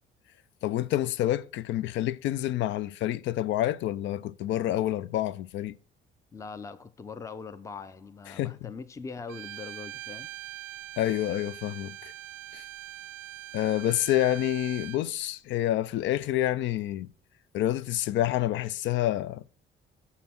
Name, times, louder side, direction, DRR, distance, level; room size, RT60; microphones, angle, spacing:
voice 1, 0.6-5.8 8.3-8.6 11.0-12.1 12.5-12.6 13.5-17.1 17.5-19.4, left 13 dB, 70° left, 0.5 m, -28 dB
voice 2, 6.3-10.3, left 5 dB, 15° left, 0.5 m, -41 dB
Bowed string instrument, 9.3-15.0, right 15 dB, 80° right, 0.4 m, -42 dB
7.1 x 5.7 x 5.9 m
cardioid pair, 145°, 20 cm